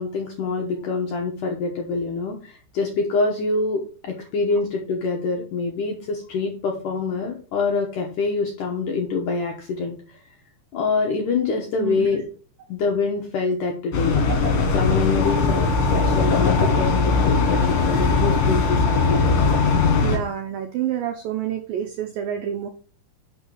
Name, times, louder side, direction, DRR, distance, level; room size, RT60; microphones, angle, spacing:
voice 1, 0.0-10.2 10.7-12.2 12.7-14.2 14.7-15.7 15.9-19.2, left 4 dB, 75° left, 0 dB, 1.9 m, -25 dB
voice 2, 11.8-12.2 20.0-22.7, right 10 dB, 90° right, 5 dB, 2.0 m, -28 dB
sound 1, 13.9-20.2, left 4 dB, 55° left, 3.1 m, -20 dB
sound 2, 15.2-20.0, left 4 dB, 35° left, 2.2 m, -31 dB
6.3 x 5.5 x 6.1 m, 0.41 s
omnidirectional pair, 5.2 m